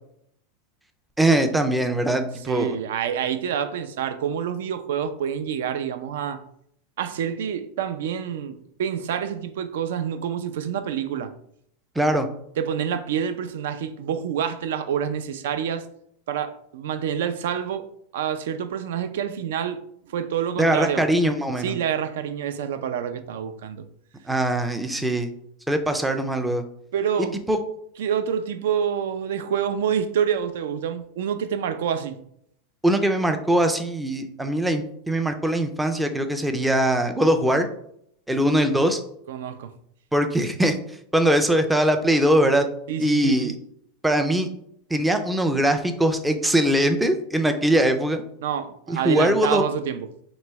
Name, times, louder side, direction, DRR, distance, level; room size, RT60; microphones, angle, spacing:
voice 1, 1.2-2.8 12.0-12.3 20.6-21.7 24.3-25.3 25.7-26.6 27.5-27.6 32.8-37.7 38.3-39.0 40.1-40.8 41.1-42.7 43.0-43.5 44.0-44.5 44.9-48.2 48.9-49.6, right 1 dB, 5° right, 0.4 m, -21 dB
voice 2, 2.5-6.4 7.0-11.3 12.6-15.8 16.3-17.9 18.1-19.8 20.1-21.1 21.6-23.8 26.9-27.4 28.0-32.2 39.3-39.7 42.9-43.6 48.4-50.1, right 8 dB, 80° right, 0.4 m, -27 dB
3.1 x 2.9 x 4.6 m
supercardioid pair, 155°, 0 cm